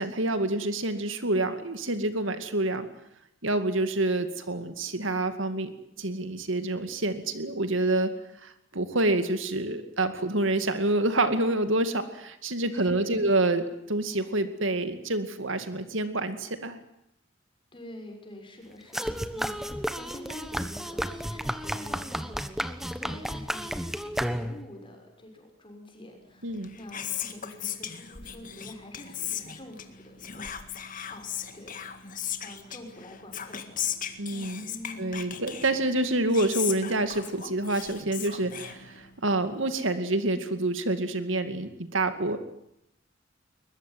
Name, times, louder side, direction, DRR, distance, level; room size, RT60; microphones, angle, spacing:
voice 1, 0.0-2.9 3.4-8.1 8.4-16.8 26.4-26.7 34.2-34.7 35.0-42.4, right 2 dB, 80° right, 9 dB, 2.3 m, -27 dB
voice 2, 12.7-13.3 17.7-22.4 22.8-30.6 31.0-31.8 32.4-33.8 34.1-35.4, left 1 dB, 25° left, 3 dB, 6.4 m, -46 dB
sound 1, 18.9-24.8, equal, ahead, 1.2 m, -32 dB
Whispering, 26.5-39.3, left 9 dB, 45° left, 2.0 m, -37 dB
21.5 x 21.5 x 9.4 m, 0.78 s
head